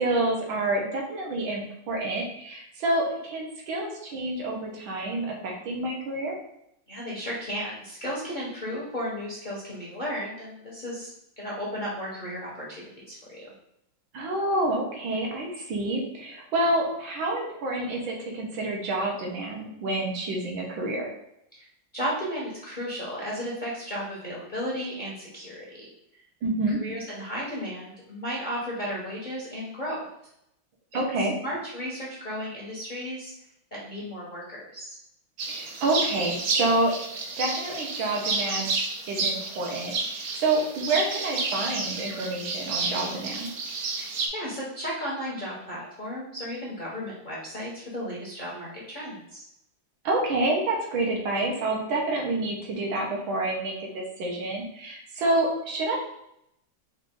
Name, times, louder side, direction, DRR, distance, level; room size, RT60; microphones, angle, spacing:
voice 1, 0.0-6.4 14.1-21.1 26.4-26.8 30.9-31.3 35.5-36.9 37.4-38.7 39.1-43.5 50.1-56.0, right 2 dB, 85° right, -1 dB, 1.8 m, -28 dB
voice 2, 6.9-11.1 11.4-13.5 21.5-21.7 21.9-25.9 26.1-26.2 26.8-30.0 31.2-33.3 33.7-35.0 43.9-49.4, equal, 35° left, -6 dB, 0.8 m, -34 dB
sound 1, 35.4-44.3, right 4 dB, 65° right, 1.0 m, -31 dB
4.9 x 2.6 x 3.6 m, 0.78 s
omnidirectional pair, 2.1 m